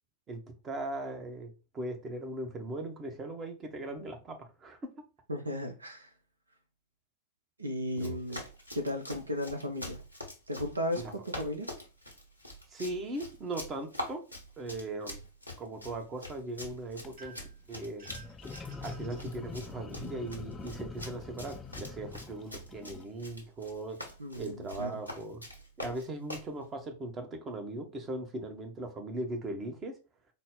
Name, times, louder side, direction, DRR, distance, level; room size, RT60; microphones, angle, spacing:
voice 1, 0.3-4.8 8.0-8.4 11.0-11.1 12.7-14.2 14.6-15.2 15.6-17.3 17.7-18.1 18.8-24.0 24.4-25.4 25.8-29.9, right 2 dB, 25° right, 0.8 m, -39 dB
voice 2, 5.3-6.1 7.6-8.5 8.7-10.0 10.5-11.7 24.2-24.9, left 1 dB, 80° right, 0.5 m, -35 dB
Run, 7.9-26.5, left 1 dB, 90° left, 0.8 m, -45 dB
sound 1, 16.9-17.3 18.0-23.0, left 4 dB, 15° left, 0.4 m, -44 dB
sound 2, 17.2-17.6 18.0-19.3, right 5 dB, 50° right, 1.4 m, -53 dB
3.9 x 2.0 x 3.7 m
figure-of-eight pair, 90°, 0 cm